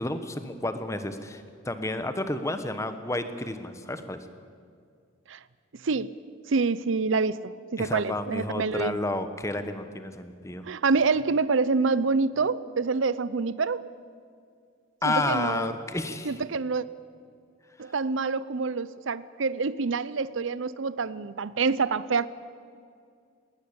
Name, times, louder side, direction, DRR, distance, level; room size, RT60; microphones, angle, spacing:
voice 1, 0.0-4.2 7.8-10.6 15.0-16.4, left 2 dB, 15° left, 1.2 m, -31 dB
voice 2, 5.7-6.1 6.5-9.0 10.6-13.9 15.0-15.7 16.2-16.8 17.8-22.3, right 4 dB, 75° right, 0.6 m, -27 dB
19.5 x 19.0 x 8.8 m
head